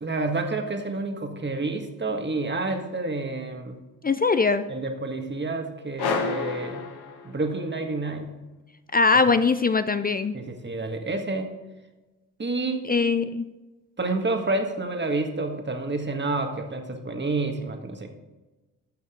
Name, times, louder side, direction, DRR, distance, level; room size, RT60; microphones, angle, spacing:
voice 1, 0.0-3.8 4.7-6.8 7.2-8.4 10.3-11.5 12.4-12.9 14.0-18.1, right 3 dB, 25° right, 4 dB, 1.7 m, -29 dB
voice 2, 4.0-4.7 8.9-10.4 12.8-13.5, left 4 dB, 25° left, 11 dB, 0.5 m, -21 dB
sound 1, 6.0-7.7, left 5 dB, 70° left, 1.3 m, -30 dB
12.0 x 6.3 x 3.8 m, 1.1 s
supercardioid pair, 50°, 40 cm